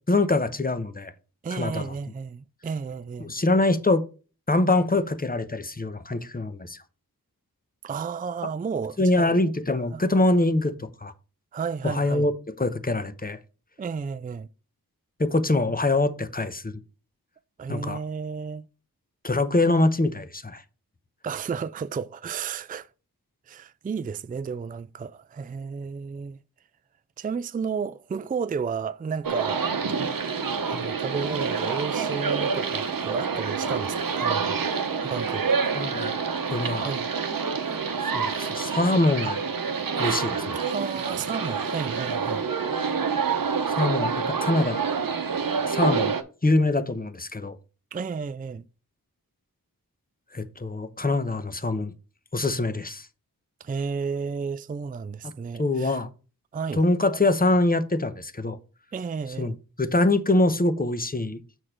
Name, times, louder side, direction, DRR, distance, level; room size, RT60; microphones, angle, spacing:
voice 1, 0.1-1.1 1.5-1.9 3.2-4.0 4.5-6.8 9.0-11.1 11.8-13.4 15.2-16.8 17.7-18.0 19.2-20.6 35.7-36.1 36.5-36.9 38.0-39.4 40.0-40.6 43.8-44.8 45.7-46.1 46.4-47.6 50.3-51.9 52.3-53.1 55.2-55.3 55.6-56.1 56.7-58.6 59.4-61.4, left 2 dB, 25° left, 0.8 m, -24 dB
voice 2, 1.4-3.4 7.8-9.4 9.9-10.0 11.5-12.3 13.8-14.5 17.6-18.6 21.2-22.9 23.5-26.4 27.2-29.7 30.4-34.6 35.0-35.6 36.8-37.1 38.3-38.5 40.5-42.4 47.9-48.7 53.6-56.0 56.5-56.8 58.9-59.6, right 5 dB, 25° right, 0.3 m, -32 dB
sound 1, 29.2-46.2, right 5 dB, 65° right, 0.8 m, -27 dB
6.4 x 4.5 x 5.0 m
wide cardioid pair, 40°, 36 cm